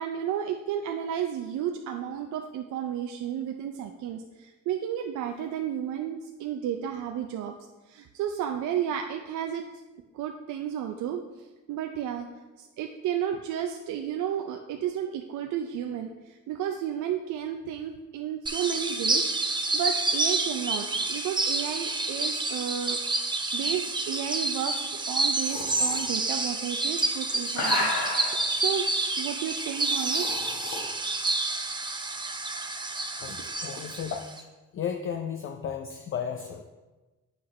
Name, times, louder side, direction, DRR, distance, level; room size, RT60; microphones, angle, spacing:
voice 1, 0.0-7.5 7.9-9.7 10.1-12.3 12.6-23.0 23.5-27.9 28.3-28.9 29.2-30.3 33.3-33.9, right 9 dB, 75° right, 5 dB, 0.5 m, -33 dB
sound 1, 18.5-34.4, right 2 dB, 15° right, 0.6 m, -29 dB
sound 2, 25.4-26.0 27.0-28.4 29.5-30.8, left 2 dB, 80° left, 1.4 m, -32 dB
voice 2, 33.2-34.4 34.7-36.7, left 7 dB, 45° left, 4 dB, 0.5 m, -34 dB
7.8 x 5.8 x 3.2 m, 1.2 s
cardioid pair, 90°, 30 cm